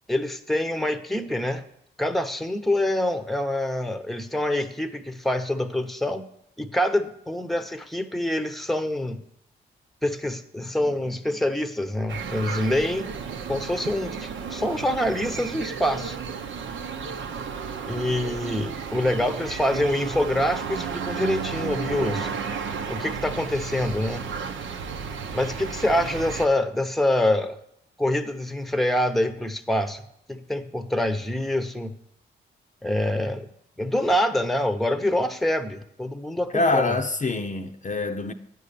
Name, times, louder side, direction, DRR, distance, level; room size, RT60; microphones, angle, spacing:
voice 1, 0.1-1.6 2.0-6.2 6.6-9.2 10.0-13.1 13.5-16.2 17.9-22.3 22.9-24.3 25.3-27.6 28.0-30.0 30.3-32.0 32.8-33.5 33.8-37.0, left 1 dB, ahead, 0.9 m, -25 dB
sound 1, 12.1-26.5, right 6 dB, 65° right, 0.8 m, -33 dB
voice 2, 36.5-38.3, left 3 dB, 35° left, 0.7 m, -25 dB
9.6 x 5.5 x 6.8 m
supercardioid pair, 50°, 21 cm